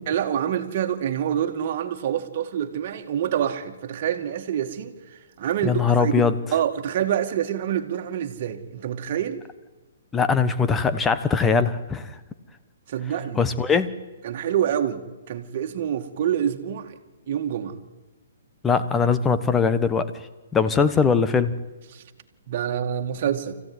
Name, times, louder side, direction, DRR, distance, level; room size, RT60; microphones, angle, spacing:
voice 1, 0.1-9.4 12.9-13.4 14.2-17.0 17.3-17.8 21.9-22.0 22.5-23.5, right 9 dB, 45° right, 2.2 m, -27 dB
voice 2, 5.6-6.3 10.1-12.2 13.4-13.9 18.6-20.3 20.5-21.6, left 5 dB, 10° left, 1.1 m, -21 dB
25.0 x 15.5 x 9.7 m
hypercardioid pair, 155°, 0 cm